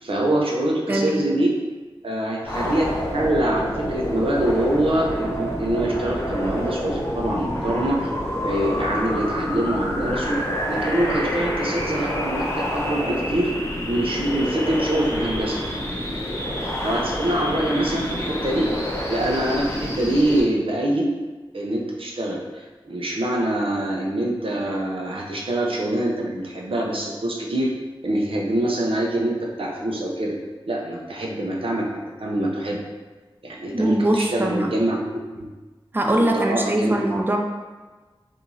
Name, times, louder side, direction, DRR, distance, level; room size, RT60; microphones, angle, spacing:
voice 1, 0.0-1.5 2.0-2.8 3.1-8.1 8.4-10.4 10.7-13.5 13.9-15.6 16.6-18.7 19.1-21.1 21.5-27.7 28.0-30.3 30.7-31.9 32.2-32.8 33.4-35.5 36.2-36.9, right 1 dB, 75° right, -2 dB, 0.6 m, -24 dB
voice 2, 0.9-1.2 33.7-34.7 35.9-37.4, right 1 dB, 20° right, 2 dB, 0.4 m, -22 dB
sound 1, 2.4-20.4, equal, 30° left, 0.7 m, -27 dB
3.0 x 2.6 x 3.8 m, 1.3 s
wide cardioid pair, 65°, 9 cm